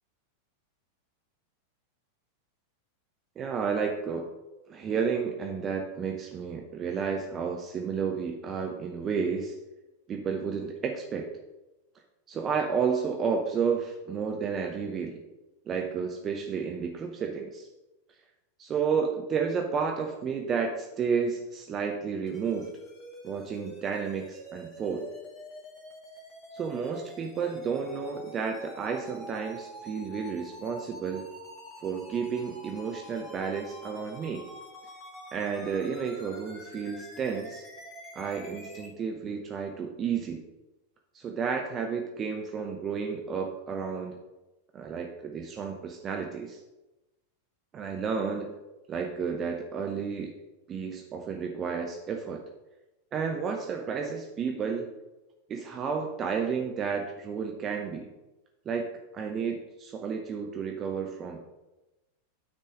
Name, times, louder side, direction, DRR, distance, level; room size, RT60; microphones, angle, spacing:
voice 1, 3.4-4.3 4.7-9.6 10.1-11.3 12.3-15.2 15.7-17.7 18.6-22.7 23.2-25.1 26.5-31.3 31.8-34.5 35.3-37.7 38.1-40.4 41.1-44.2 44.7-46.6 47.7-48.5 48.9-50.4 50.7-52.4 53.1-54.9 55.5-58.1 58.7-61.4, right 6 dB, 25° right, 3 dB, 0.8 m, -31 dB
sound 1, 22.3-38.9, equal, 25° left, 2.2 m, -47 dB
9.4 x 4.3 x 5.1 m, 1.0 s
figure-of-eight pair, 90°, 0 cm